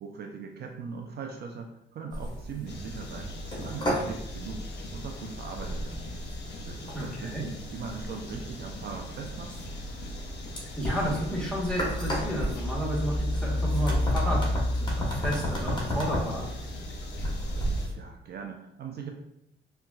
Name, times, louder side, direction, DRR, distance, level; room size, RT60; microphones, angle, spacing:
voice 1, 0.0-4.6 4.9-6.0 6.7-9.6 17.9-19.1, right 5 dB, 55° right, 2 dB, 0.4 m, -40 dB
sound 1, 2.1-17.9, equal, 25° left, 1.0 m, -32 dB
sound 2, 2.7-17.9, left 3 dB, 60° left, 0.6 m, -44 dB
voice 2, 6.9-7.5 10.7-14.4 14.7-16.4, equal, 5° left, -5 dB, 1.1 m, -32 dB
3.9 x 2.3 x 2.3 m, 0.79 s
cardioid pair, 90°, 20 cm